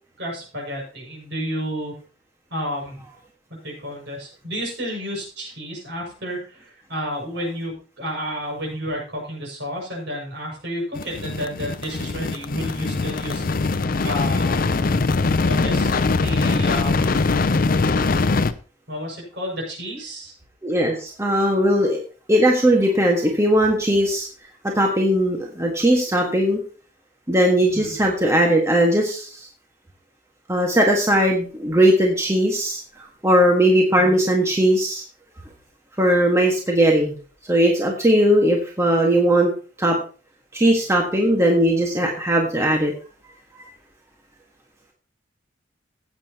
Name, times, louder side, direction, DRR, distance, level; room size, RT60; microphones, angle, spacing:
voice 1, 0.2-1.9 2.5-3.0 3.6-14.7 15.5-17.2 18.9-20.3 27.7-27.9 34.0-34.1, equal, 65° right, -1 dB, 6.5 m, -31 dB
sound 1, 10.9-18.5, left 3 dB, 50° left, 0.5 m, -22 dB
voice 2, 20.6-22.0 22.3-24.3 24.6-26.6 27.3-29.3 30.5-32.8 33.2-35.0 36.0-37.1 37.5-39.5 39.8-40.0 40.5-42.9, right 1 dB, 15° right, 0 dB, 1.6 m, -18 dB
15.5 x 8.9 x 2.9 m, 0.38 s
head